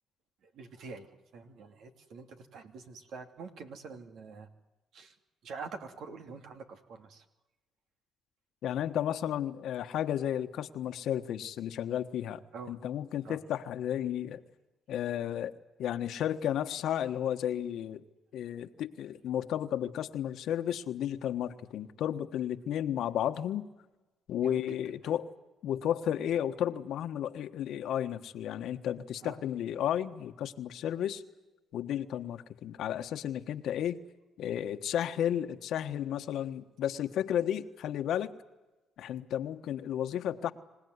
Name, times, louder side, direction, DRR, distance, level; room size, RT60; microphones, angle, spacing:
voice 1, 0.4-4.5 4.9-5.2 5.4-7.2 12.5-12.8 13.2-13.4 24.4-24.8 29.2-29.4, right 4 dB, 75° right, 6 dB, 2.8 m, -46 dB
voice 2, 8.6-12.4 12.7-14.4 14.9-15.5 15.8-18.0 18.3-23.7 24.3-25.3 25.6-31.2 31.7-34.0 34.4-38.3 39.0-40.5, left 10 dB, 80° left, 9 dB, 1.3 m, -33 dB
26.5 x 17.5 x 9.6 m, 1.1 s
cardioid pair, 90°, 0 cm